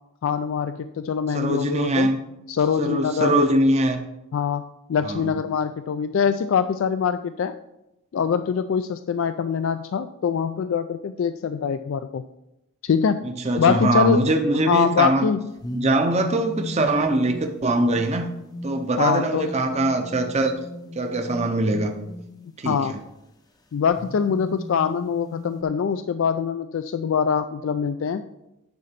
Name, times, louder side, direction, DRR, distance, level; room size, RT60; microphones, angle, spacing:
voice 1, 0.2-2.1 2.5-3.4 4.3-4.6 4.9-7.5 8.1-12.2 12.8-13.2 13.6-14.2 14.7-15.4 19.0-19.5 22.6-22.9 23.7-28.2, left 6 dB, 65° left, 10 dB, 0.3 m, -23 dB
voice 2, 1.3-2.2 2.8-4.0 5.0-5.3 13.2-15.3 15.7-18.3 18.6-20.6 21.0-21.9 22.6-23.0, right 2 dB, 30° right, 5 dB, 0.6 m, -22 dB
sound 1, 15.6-23.0 23.9-25.6, left 1 dB, 15° left, 0.6 m, -38 dB
9.7 x 3.8 x 5.8 m, 0.91 s
head